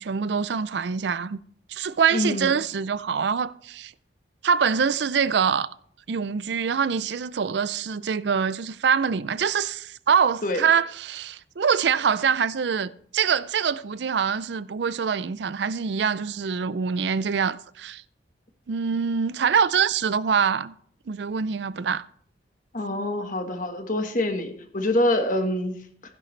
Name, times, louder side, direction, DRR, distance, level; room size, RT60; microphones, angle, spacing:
voice 1, 0.0-1.4 1.7-3.9 4.4-5.7 6.1-18.0 18.7-20.7 21.1-22.0, right 6 dB, 70° right, 0.4 m, -24 dB
voice 2, 2.1-2.5 10.4-10.6 22.7-26.2, left 1 dB, 45° left, 1.4 m, -26 dB
15.5 x 11.0 x 3.2 m
head